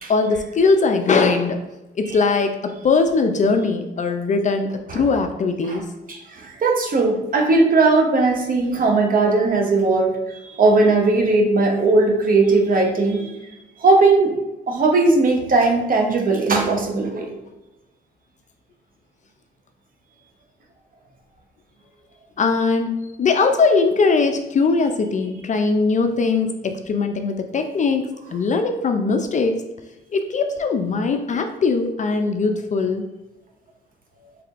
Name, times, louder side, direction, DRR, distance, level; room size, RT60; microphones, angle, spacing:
voice 1, 0.1-1.6 1.9-5.9 22.4-29.5 30.1-33.0, left 4 dB, 40° left, 6 dB, 0.4 m, -20 dB
voice 2, 6.1-13.4 13.8-14.3 14.7-17.3, right 3 dB, 45° right, 2 dB, 0.9 m, -18 dB
4.6 x 3.2 x 2.5 m, 0.99 s
cardioid pair, 90°, 20 cm